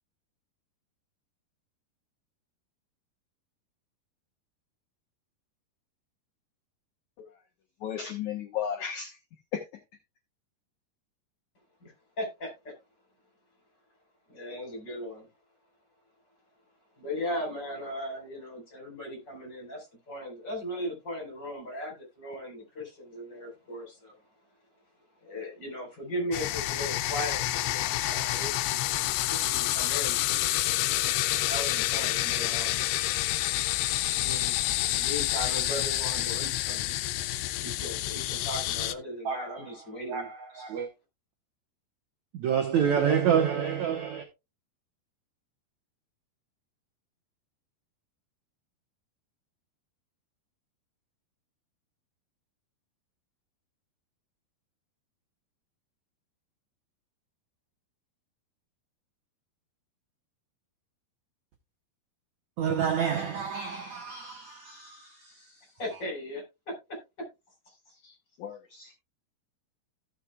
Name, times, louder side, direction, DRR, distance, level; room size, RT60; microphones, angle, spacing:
voice 1, 7.8-9.2 9.5-9.6 68.4-68.9, left 8 dB, 65° left, 1.9 m, -34 dB
voice 2, 11.8-12.7 14.3-15.3 17.0-24.2 25.2-30.2 31.5-32.9 34.1-34.6 34.9-36.9 37.6-40.3 65.8-67.0 67.7-68.2, equal, 25° left, 4.6 m, -38 dB
sound 1, 26.3-38.9, left 15 dB, 85° left, 2.8 m, -28 dB
voice 3, 39.3-39.7 40.1-40.9 42.3-44.2 62.6-65.1 65.9-66.0, right 8 dB, 70° right, 1.7 m, -28 dB
16.5 x 6.8 x 2.3 m
omnidirectional pair, 4.8 m